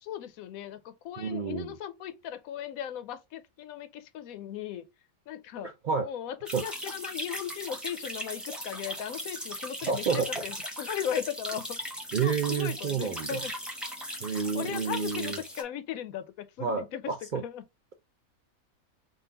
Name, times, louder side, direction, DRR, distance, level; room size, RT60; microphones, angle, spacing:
voice 1, 0.0-4.9 5.3-5.7 6.0-11.8 12.2-13.5 14.3-17.6, left 10 dB, 85° left, 1.1 m, -37 dB
voice 2, 1.2-1.7 5.6-6.1 6.5-6.6 9.9-10.3 12.1-13.4 14.2-15.4 16.6-17.4, right 6 dB, 85° right, 0.4 m, -30 dB
sound 1, 6.5-15.6, equal, ahead, 0.8 m, -38 dB
3.9 x 2.4 x 3.8 m
omnidirectional pair, 1.5 m